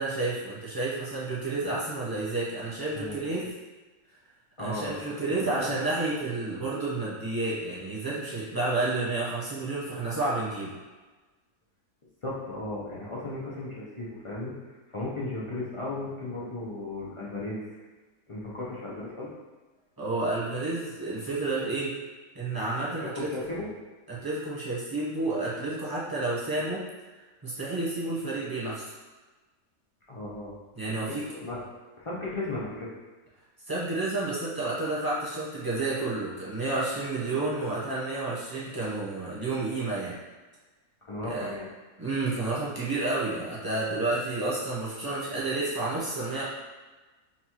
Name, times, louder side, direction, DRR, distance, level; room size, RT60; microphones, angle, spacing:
voice 1, 0.0-3.5 4.6-10.8 20.0-21.9 22.3-23.3 24.1-26.8 27.4-28.9 30.8-31.3 33.7-40.2 41.2-41.5 42.0-46.4, right 2 dB, 20° right, -8 dB, 0.8 m, -30 dB
voice 2, 2.9-3.5 4.6-5.8 12.2-17.8 18.3-19.3 23.0-23.7 30.1-30.5 30.9-31.6 32.0-32.9 41.0-41.7, left 2 dB, 55° left, -7 dB, 0.3 m, -36 dB
5.9 x 2.3 x 3.0 m, 1.3 s
omnidirectional pair, 1.6 m